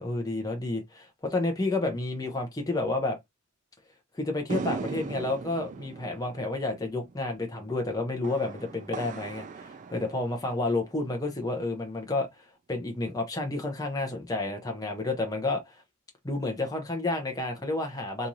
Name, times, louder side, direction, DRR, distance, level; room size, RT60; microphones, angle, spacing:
voice 1, 0.0-3.2 4.1-15.8 16.2-18.3, left 2 dB, 15° left, 0.6 m, -30 dB
sound 1, 4.5-11.0, right 4 dB, 35° right, 0.3 m, -39 dB
3.0 x 2.6 x 3.8 m
head